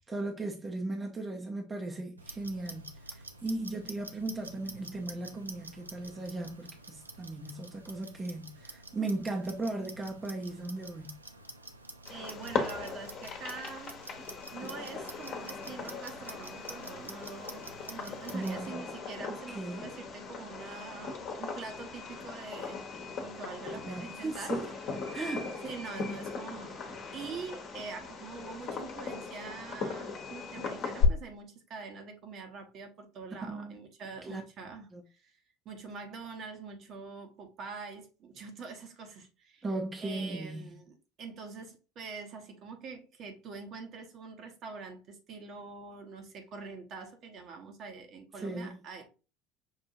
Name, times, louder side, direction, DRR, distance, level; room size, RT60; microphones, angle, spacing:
voice 1, 0.0-11.2 18.3-18.9 19.5-19.9 23.7-24.7 25.1-25.6 33.5-33.8 34.2-34.4 34.9-35.0 39.6-40.6 48.3-48.8, right 2 dB, 20° right, 0.7 m, -37 dB
Clock, 2.2-18.7, right 2 dB, 90° right, 0.4 m, -48 dB
Fireworks, 12.1-31.1, left 6 dB, 45° left, 1.0 m, -38 dB
voice 2, 12.1-14.0 14.5-22.8 23.2-24.6 25.6-26.8 27.1-35.3 35.6-39.6 40.0-49.1, right 4 dB, 45° right, 1.0 m, -45 dB
5.6 x 2.6 x 2.6 m
figure-of-eight pair, 65°, 0 cm